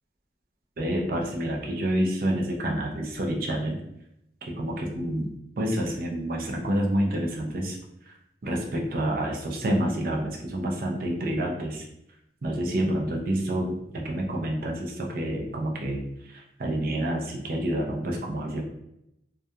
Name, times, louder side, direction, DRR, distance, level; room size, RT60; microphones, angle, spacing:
voice 1, 0.8-3.8 4.5-7.8 8.1-8.2 8.4-11.9 12.4-18.6, right 1 dB, 55° right, 0 dB, 0.4 m, -28 dB
2.3 x 2.2 x 2.7 m, 0.80 s
head